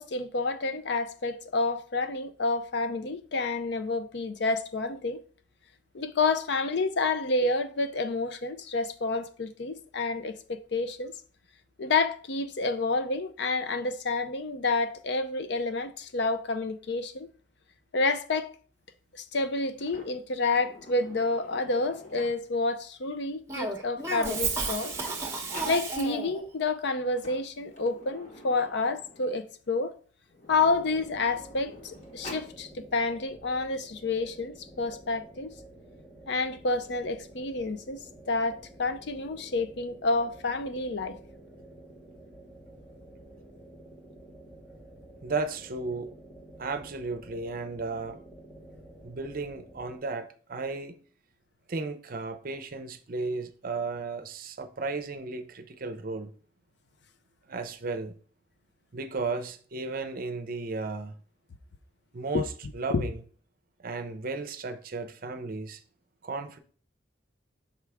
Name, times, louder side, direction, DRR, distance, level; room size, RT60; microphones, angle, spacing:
voice 1, 0.0-5.2 5.9-11.1 11.8-17.3 17.9-18.5 19.1-24.9 25.6-30.0 30.5-35.5 36.3-41.1 62.3-62.4 62.9-63.0, left 3 dB, 60° left, 0.5 m, -29 dB
Sliding door, 19.8-22.6 23.6-23.7 24.0-25.8 26.9-29.5 30.3-32.5, left 1 dB, 35° left, 1.2 m, -48 dB
Cough, 23.5-26.4, right 3 dB, 15° right, 0.9 m, -32 dB
sound 1, 30.5-50.0, right 1 dB, 15° left, 0.9 m, -51 dB
voice 2, 45.2-46.1 46.6-48.2 49.0-51.0 51.7-56.3 57.5-58.2 58.9-61.2 62.1-63.2 63.8-65.8 66.2-66.6, right 3 dB, 45° right, 0.6 m, -34 dB
5.8 x 4.6 x 3.5 m
head